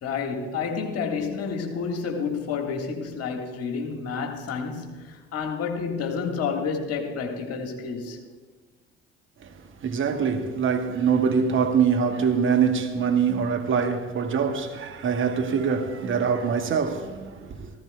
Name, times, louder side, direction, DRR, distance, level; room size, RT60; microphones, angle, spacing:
voice 1, 0.0-8.2, left 5 dB, 55° left, 1.8 m, -30 dB
voice 2, 9.8-17.7, right 6 dB, 40° right, 1.2 m, -24 dB
16.0 x 15.0 x 2.3 m
figure-of-eight pair, 50°, 30 cm